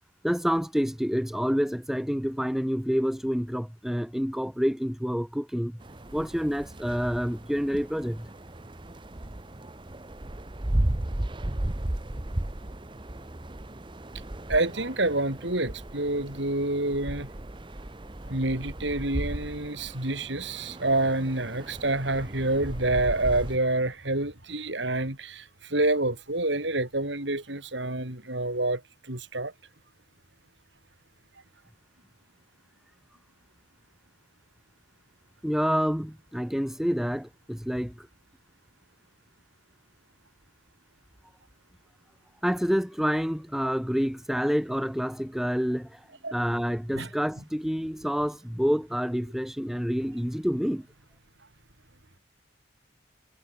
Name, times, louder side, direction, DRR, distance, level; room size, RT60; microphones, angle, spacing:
voice 1, 0.2-5.8 6.1-8.3 35.4-38.1 42.4-50.9, equal, ahead, 0.9 m, -28 dB
sound 1, 5.8-23.6, right 1 dB, 25° right, 1.0 m, -35 dB
voice 2, 14.5-17.3 18.3-29.5 46.2-46.3 46.9-47.1, right 2 dB, 70° right, 4.9 m, -28 dB
head